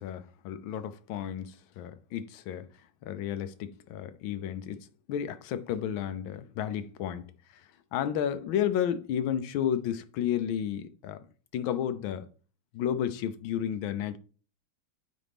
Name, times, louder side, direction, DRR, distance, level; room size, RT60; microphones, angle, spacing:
voice 1, 0.0-2.7 3.0-7.2 7.9-11.2 11.5-12.2 12.7-14.2, left 9 dB, 85° left, 1.5 m, -32 dB
8.9 x 4.3 x 3.5 m
omnidirectional pair, 2.2 m